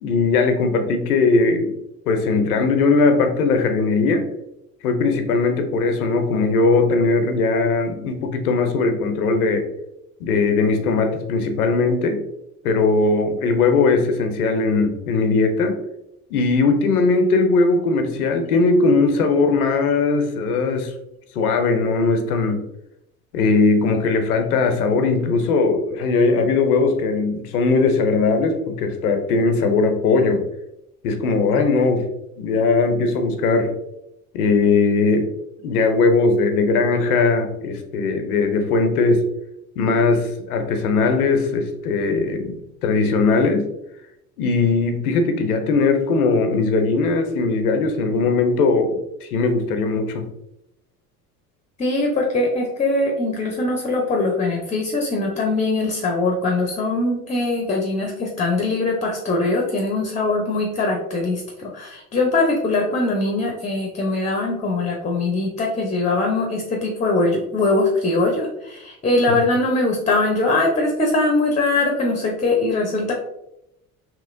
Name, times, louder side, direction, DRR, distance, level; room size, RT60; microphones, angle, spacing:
voice 1, 0.0-1.7 2.1-4.2 4.8-9.6 10.2-12.2 12.6-15.8 16.3-20.9 21.4-22.6 23.3-30.4 31.0-32.0 32.4-33.7 34.3-35.3 35.6-39.2 39.8-43.7 44.4-50.3 69.3-69.4, left 3 dB, 90° left, 6 dB, 0.6 m, -19 dB
voice 2, 51.8-73.1, left 2 dB, 15° left, 1 dB, 0.5 m, -21 dB
2.9 x 2.8 x 2.4 m, 0.85 s
hypercardioid pair, 75°, 43 cm